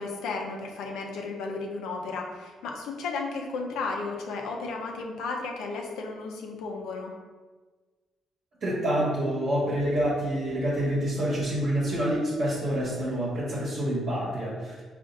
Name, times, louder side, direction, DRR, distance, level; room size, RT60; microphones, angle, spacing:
voice 1, 0.0-7.1, left 3 dB, 90° left, 1 dB, 0.6 m, -34 dB
voice 2, 8.6-14.8, right 1 dB, 60° right, -7 dB, 1.1 m, -27 dB
5.0 x 2.5 x 2.5 m, 1.4 s
cardioid pair, 90°, 0 cm